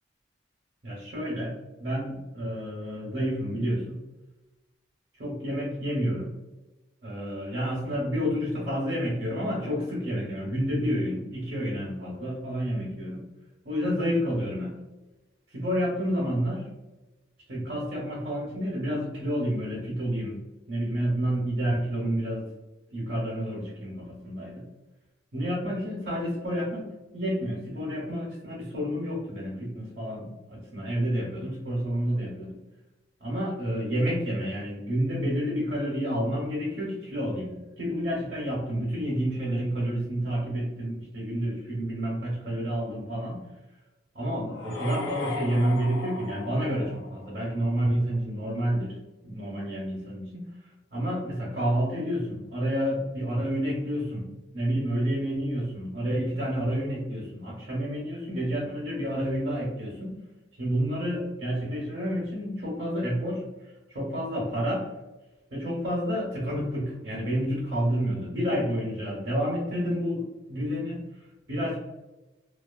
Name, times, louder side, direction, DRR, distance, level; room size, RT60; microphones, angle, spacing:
voice 1, 0.8-1.5 1.8-4.0 5.2-6.3 7.0-13.2 13.6-14.8 15.5-16.7 17.5-20.4 20.7-22.4 22.9-24.6 25.3-32.5 33.2-43.4 44.1-49.0 49.2-54.3 54.5-60.1 60.6-64.9 65.5-71.8, equal, 50° right, -4 dB, 0.6 m, -29 dB
sound 1, 44.5-47.5, left 3 dB, 75° left, 0.4 m, -37 dB
2.4 x 2.3 x 2.3 m, 1.1 s
head